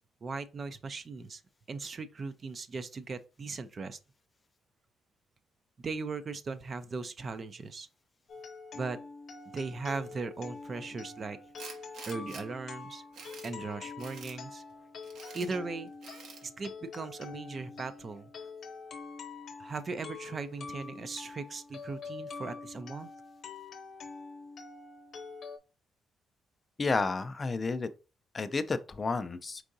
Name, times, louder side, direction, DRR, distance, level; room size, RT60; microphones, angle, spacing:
voice 1, 0.2-1.4 1.7-4.0 5.8-7.9 8.7-9.0 9.5-11.4 12.1-13.0 13.4-14.6 15.3-15.9 16.4-18.3 19.6-23.1, right 4 dB, 35° right, 0.4 m, -38 dB
sound 1, 8.3-25.6, left 4 dB, 55° left, 0.9 m, -45 dB
Tools, 11.6-12.4 12.9-13.5 14.0-14.4 15.0-15.5 16.0-16.4, right 4 dB, 70° right, 1.0 m, -47 dB
voice 2, 26.8-27.9 28.3-29.6, left 4 dB, 30° left, 0.4 m, -31 dB
4.6 x 3.6 x 2.6 m
cardioid pair, 115°, 0 cm